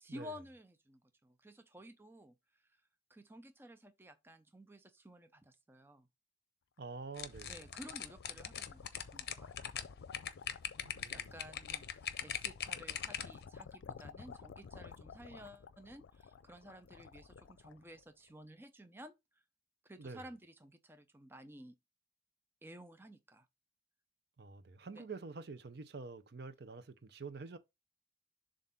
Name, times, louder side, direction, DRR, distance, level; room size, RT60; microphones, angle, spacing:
voice 1, 0.0-2.8 3.1-6.1 7.4-9.5 11.1-19.1 19.8-21.7 22.6-23.5 24.9-25.0, equal, 10° right, 0.5 m, -54 dB
voice 2, 6.8-7.6 10.8-11.3 20.0-20.2 24.4-27.6, right 4 dB, 55° right, 0.6 m, -47 dB
sound 1, 7.1-18.3, left 6 dB, 85° left, 0.4 m, -53 dB
sound 2, 7.2-13.4, left 9 dB, 55° left, 0.7 m, -41 dB
7.2 x 2.5 x 5.6 m
head